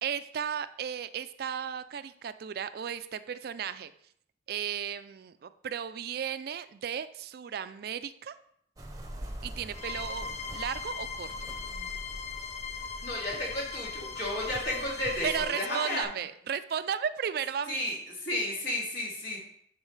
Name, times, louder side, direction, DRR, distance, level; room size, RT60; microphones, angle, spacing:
voice 1, 0.0-3.9 4.5-8.3 9.4-10.3 10.5-11.3 15.2-17.9, right 8 dB, 55° right, 13 dB, 0.3 m, -34 dB
sound 1, 8.8-15.5, right 1 dB, 20° right, 0.7 m, -44 dB
sound 2, 9.7-16.0, left 6 dB, 40° left, 0.5 m, -39 dB
voice 2, 13.0-16.0 17.7-19.4, left 1 dB, 75° left, -4 dB, 2.7 m, -33 dB
9.5 x 4.5 x 3.2 m, 0.67 s
head